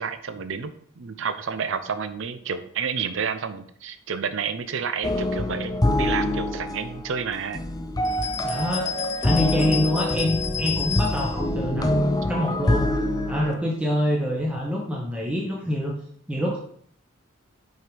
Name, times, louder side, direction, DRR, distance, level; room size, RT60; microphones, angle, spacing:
voice 1, 0.0-7.6, right 6 dB, 60° right, 11 dB, 0.5 m, -30 dB
sound 1, 5.0-13.5, left 1 dB, 15° left, 0.4 m, -26 dB
sound 2, 8.0-11.4, left 8 dB, 30° left, 0.9 m, -31 dB
voice 2, 8.4-8.9 9.2-12.9 13.3-16.0 16.3-16.6, equal, 5° right, -2 dB, 0.9 m, -25 dB
6.4 x 4.6 x 5.1 m, 0.62 s
head